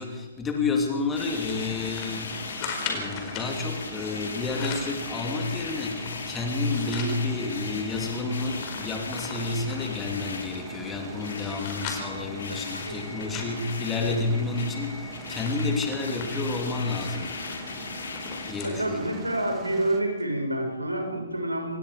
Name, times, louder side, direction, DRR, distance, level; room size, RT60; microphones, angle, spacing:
voice 1, 0.0-17.3 18.5-19.1, left 3 dB, 10° left, 2 dB, 3.0 m, -30 dB
sound 1, 1.1-18.5, left 4 dB, 60° left, 3.7 m, -38 dB
sound 2, 1.1-20.0, right 4 dB, 15° right, 2.3 m, -44 dB
sound 3, 1.5-3.5 4.3-5.0 5.5-7.2 7.6-7.7 8.0-10.0 10.6-14.3 14.7-14.9 15.2-18.8 19.2-19.3 20.2-20.3, left 5 dB, 30° left, 4.7 m, -40 dB
voice 2, 12.5-13.0 14.0-14.1 18.6-21.8, right 1 dB, 85° right, 3 dB, 6.3 m, -28 dB
27.0 x 21.0 x 5.1 m, 1.2 s
figure-of-eight pair, 125°, 0 cm